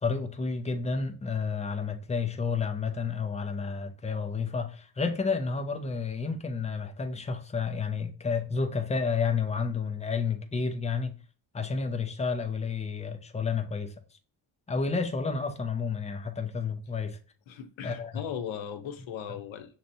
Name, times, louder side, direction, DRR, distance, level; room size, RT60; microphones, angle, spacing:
voice 1, 0.0-11.1 11.5-13.9 14.7-17.2 17.8-18.2, left 5 dB, 15° left, 0.3 m, -30 dB
voice 2, 17.5-19.7, left 8 dB, 75° left, 0.8 m, -38 dB
6.4 x 2.9 x 2.6 m
wide cardioid pair, 175°, 48 cm